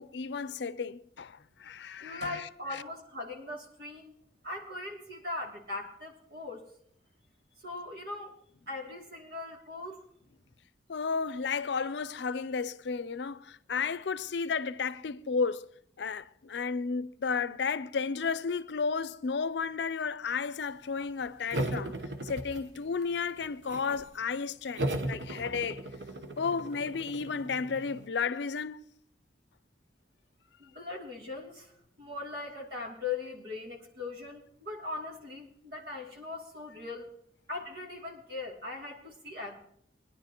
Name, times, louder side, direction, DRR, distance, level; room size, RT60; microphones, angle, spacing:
voice 1, 0.0-2.8 10.9-15.7 16.0-22.0 22.2-25.8 26.4-28.8, left 5 dB, 85° left, 0.5 m, -33 dB
voice 2, 2.0-4.1 4.4-6.6 7.6-8.3 8.7-10.0 30.6-31.7 32.0-37.1 37.5-39.5, left 3 dB, 65° right, 2.8 m, -40 dB
sound 1, 21.5-23.0 23.4-24.1 24.8-28.1, right 1 dB, 85° right, 1.0 m, -36 dB
21.5 x 10.5 x 3.0 m
head